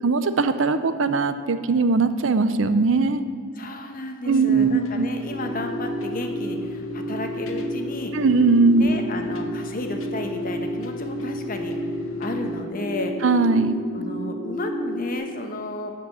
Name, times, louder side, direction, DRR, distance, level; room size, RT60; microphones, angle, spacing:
voice 1, 0.0-3.2 4.3-5.1 8.1-8.9 13.2-13.8, right 4 dB, 65° right, 11 dB, 0.6 m, -20 dB
voice 2, 3.6-8.1 8.8-11.7 12.2-13.1 13.9-15.9, left 2 dB, 40° left, 5 dB, 1.1 m, -32 dB
sound 1, 4.5-12.6, equal, 75° left, 0.9 m, -42 dB
sound 2, 5.3-15.1, equal, 10° right, 1.2 m, -31 dB
12.5 x 5.2 x 8.8 m, 2.1 s
head